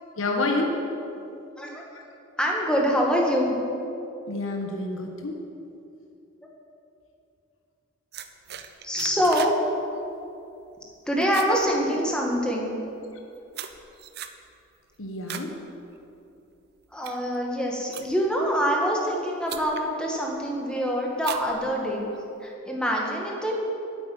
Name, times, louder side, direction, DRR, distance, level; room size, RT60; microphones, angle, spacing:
voice 1, 0.2-0.8 4.3-5.4 15.0-15.6, left 2 dB, 85° left, 2 dB, 1.3 m, -28 dB
voice 2, 2.4-3.6 8.8-9.5 11.1-12.7 16.9-22.1 22.4-23.5, equal, 5° left, -2 dB, 1.8 m, -25 dB
sound 1, 8.1-9.6 9.9-10.2 10.6-10.9 11.2-12.4 13.0-15.5 15.9-16.3 16.8-18.4 19.1-19.2 19.5-19.9 20.4-20.7 21.2-22.2, right 8 dB, 55° right, 0.6 m, -39 dB
8.9 x 8.4 x 9.4 m, 2.7 s
head